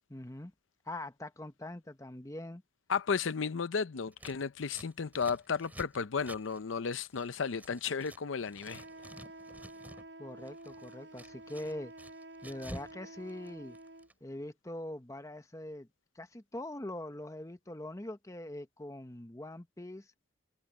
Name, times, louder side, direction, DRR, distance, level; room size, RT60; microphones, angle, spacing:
voice 1, 0.1-0.5 0.8-2.6 10.2-11.9 12.4-13.8 14.2-15.9 16.1-20.1, left 1 dB, 15° left, 1.0 m, -43 dB
voice 2, 2.9-8.8, left 5 dB, 85° left, 0.6 m, -34 dB
Scissors, 4.1-8.2 8.5-10.1 10.4-13.0 13.2-14.1, right 1 dB, 10° right, 2.7 m, -50 dB
sound 1, 8.6-14.1, right 2 dB, 60° right, 5.6 m, -50 dB
head